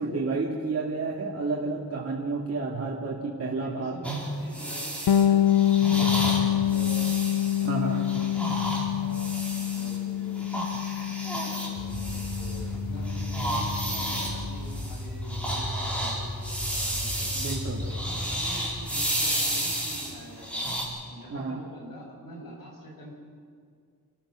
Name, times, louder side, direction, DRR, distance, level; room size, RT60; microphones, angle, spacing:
voice 1, 0.0-4.0 7.6-8.0 17.4-17.8 21.3-21.6, right 3 dB, 40° right, -4 dB, 2.5 m, -30 dB
voice 2, 3.6-7.2 7.5-8.2 9.0-10.4 11.3-17.3 17.8-20.8 21.1-23.1, equal, 65° left, -1 dB, 7.3 m, -45 dB
sound 1, 4.0-10.0 10.3-12.8 13.0-20.8, right 1 dB, 5° left, 4.9 m, -32 dB
Bass guitar, 5.1-14.7, left 11 dB, 85° left, 0.9 m, -27 dB
sound 2, 11.8-19.7, left 1 dB, 20° right, 4.6 m, -35 dB
28.5 x 14.5 x 6.4 m, 2.2 s
wide cardioid pair, 115°, 36 cm